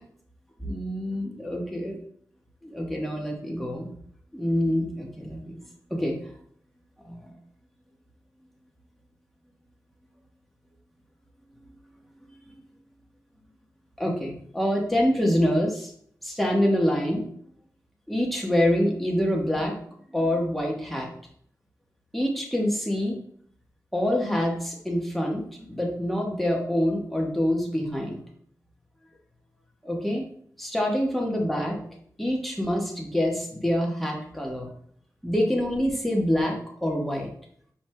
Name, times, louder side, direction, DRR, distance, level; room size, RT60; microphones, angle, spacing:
voice 1, 0.6-2.0 2.6-3.9 4.3-5.5 5.9-6.1 7.0-7.3 14.0-15.9 16.2-17.2 18.1-19.7 20.1-21.1 22.1-23.2 23.9-28.2 29.8-30.2 30.6-31.8 32.2-34.7 35.2-37.3, equal, ahead, -1 dB, 1.2 m, -26 dB
5.2 x 4.5 x 2.2 m, 0.62 s
wide cardioid pair, 80°, 7 cm